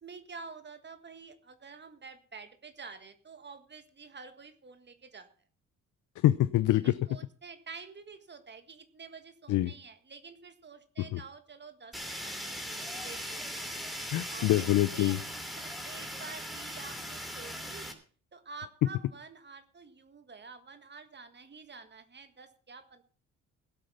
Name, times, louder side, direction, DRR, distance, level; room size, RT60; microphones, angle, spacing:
voice 1, 0.0-5.3 6.8-13.7 14.3-14.6 14.9-17.9 18.3-23.0, right 4 dB, 35° right, 9 dB, 1.6 m, -49 dB
voice 2, 6.2-7.0 9.5-9.7 11.0-11.2 14.1-15.2, left 15 dB, 80° left, 14 dB, 0.7 m, -25 dB
Fire, 11.9-17.9, equal, ahead, 2.8 m, -39 dB
17.0 x 8.0 x 5.5 m, 0.40 s
cardioid pair, 90°, 30 cm